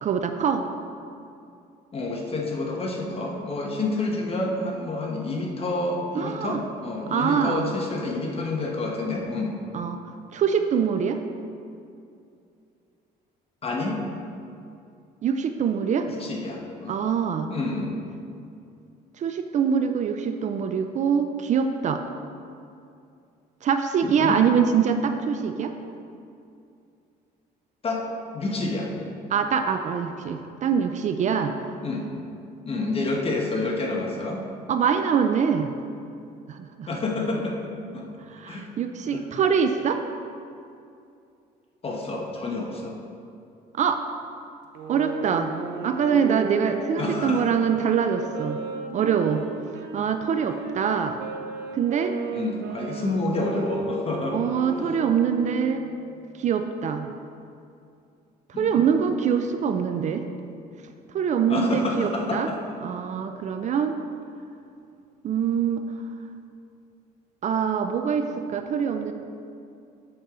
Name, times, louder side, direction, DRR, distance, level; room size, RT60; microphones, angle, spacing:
voice 1, 0.0-0.6 6.1-6.6 7.1-7.7 9.7-10.0 10.3-11.2 15.2-16.1 16.9-17.5 19.2-22.0 23.6-25.7 29.3-31.5 34.7-35.7 36.5-36.9 38.3-40.0 43.8-44.0 44.9-45.5 45.8-48.6 48.9-49.4 49.9-51.2 51.7-52.1 54.3-55.8 56.4-57.1 58.6-60.3 61.1-62.5 62.8-63.9 65.2-65.8 67.4-69.1, right 7 dB, 45° right, 7 dB, 0.5 m, -24 dB
voice 2, 1.9-9.6 13.6-14.0 16.1-17.0 17.5-17.9 24.0-24.4 27.8-28.1 28.3-28.9 31.8-32.1 32.7-34.4 36.9-37.6 37.9-38.1 38.5-38.7 39.1-39.2 41.8-43.0 47.0-47.5 52.3-54.4 54.8-54.9 58.5-58.8 61.5-62.6, left 2 dB, 35° left, 0 dB, 1.3 m, -28 dB
sound 1, 44.7-50.0 50.5-56.1, right 4 dB, 90° right, 0.7 m, -34 dB
8.0 x 6.3 x 3.8 m, 2.5 s
cardioid pair, 110°, 17 cm